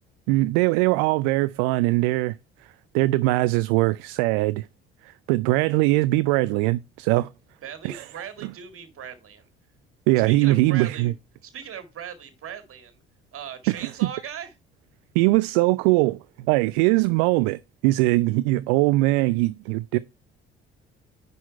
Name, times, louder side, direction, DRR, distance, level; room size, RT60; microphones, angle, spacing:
voice 1, 0.3-2.3 2.9-4.7 5.3-7.3 7.8-8.0 10.1-11.1 13.8-13.9 15.2-20.0, right 20 dB, 60° right, 0.4 m, -21 dB
voice 2, 7.6-9.4 10.2-11.1 11.4-13.0 13.3-14.5, right 8 dB, 45° right, 2.0 m, -39 dB
10.0 x 4.2 x 4.3 m
figure-of-eight pair, 50°, 30 cm